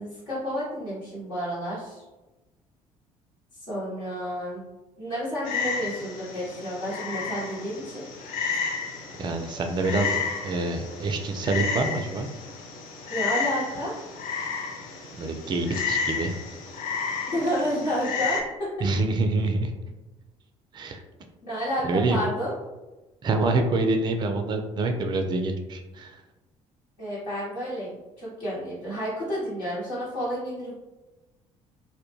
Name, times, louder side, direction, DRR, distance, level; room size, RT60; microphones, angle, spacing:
voice 1, 0.0-2.0 3.5-4.6 5.0-8.1 8.5-8.6 13.1-14.0 17.3-18.7 21.4-22.5 27.0-30.7, equal, 70° left, -9 dB, 1.1 m, -30 dB
Frog, 5.4-18.4, left 5 dB, 55° left, 0.5 m, -32 dB
voice 2, 9.2-12.3 15.2-16.4 18.8-19.7 20.7-21.0 21.8-22.2 23.2-26.2, right 2 dB, 25° right, 5 dB, 0.3 m, -26 dB
2.1 x 2.1 x 3.0 m, 1.1 s
figure-of-eight pair, 55°, 17 cm